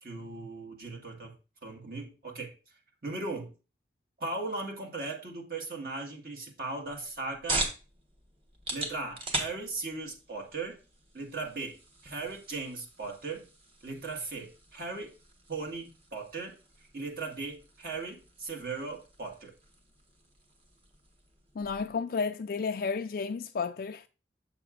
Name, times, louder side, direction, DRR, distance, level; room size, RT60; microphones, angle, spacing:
voice 1, 0.0-1.3 1.6-3.5 4.2-7.7 8.7-10.8 11.1-11.8 12.0-13.4 13.8-15.1 15.5-16.6 16.9-19.5, right 3 dB, 55° right, 1.7 m, -38 dB
sound 1, 6.8-22.0, right 2 dB, 35° right, 1.3 m, -41 dB
voice 2, 21.6-24.1, left 5 dB, 55° left, 0.4 m, -32 dB
7.1 x 6.7 x 2.5 m
head